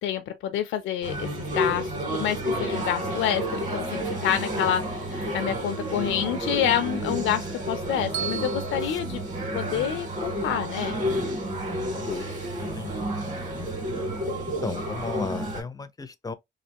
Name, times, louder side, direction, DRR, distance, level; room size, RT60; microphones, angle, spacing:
voice 1, 0.0-9.2 9.5-11.0, left 10 dB, 80° left, 0.5 m, -28 dB
sound 1, 1.0-15.6, right 1 dB, 40° right, 1.9 m, -30 dB
Bell, 8.1-10.3, right 9 dB, 65° right, 0.6 m, -37 dB
voice 2, 11.5-13.1 13.5-13.8 14.5-16.3, left 4 dB, 20° left, 0.5 m, -36 dB
3.2 x 2.4 x 2.8 m
cardioid pair, 90°, 20 cm